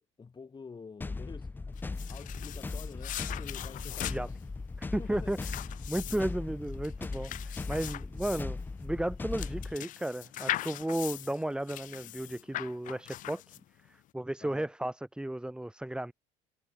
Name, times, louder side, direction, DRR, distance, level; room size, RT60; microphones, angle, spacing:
voice 1, 0.0-4.4 5.0-5.4 5.9-6.0 14.4-14.7, left 5 dB, 30° left, 4.3 m, -48 dB
sound 1, 1.0-9.8, left 3 dB, 10° left, 0.4 m, -38 dB
sound 2, 1.8-13.9, left 14 dB, 55° left, 1.0 m, -40 dB
voice 2, 4.8-5.4 5.9-13.6 13.9-16.1, right 1 dB, 5° right, 1.4 m, -34 dB
hypercardioid pair, 65°, 16 cm